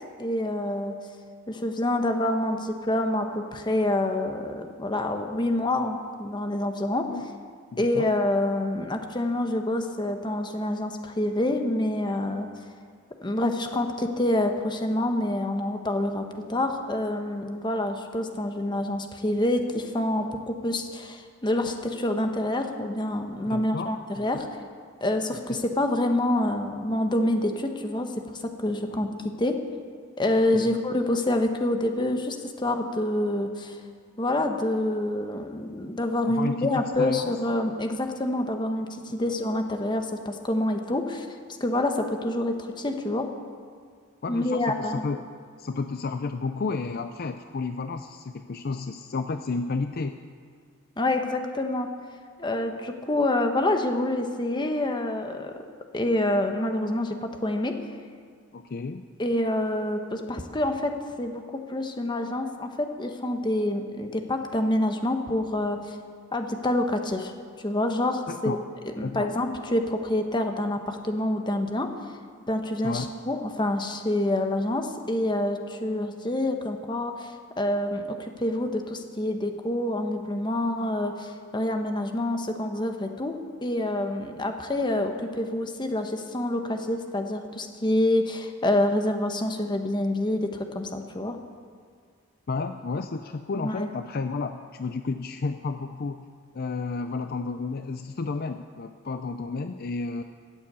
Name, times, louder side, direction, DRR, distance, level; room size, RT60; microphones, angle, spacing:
voice 1, 0.2-0.9 1.5-7.1 7.8-12.5 13.2-24.5 25.0-28.1 28.4-29.1 29.4-29.5 30.2-33.8 34.2-43.3 44.3-45.0 51.0-51.9 52.4-55.5 55.9-57.1 57.4-57.7 59.2-60.9 61.2-61.4 61.7-66.0 66.3-67.3 67.6-68.6 68.8-71.9 72.5-91.4 93.6-93.9, left 1 dB, 20° left, 5 dB, 1.0 m, -27 dB
voice 2, 7.7-8.1 23.5-24.4 28.9-29.1 30.5-30.8 36.3-37.3 44.2-45.3 45.6-50.2 58.5-59.0 68.3-68.6 69.0-69.4 72.8-73.1 92.5-96.3 96.5-100.2, left 4 dB, 50° left, 8 dB, 0.5 m, -32 dB
14.0 x 7.8 x 8.3 m, 2.1 s
head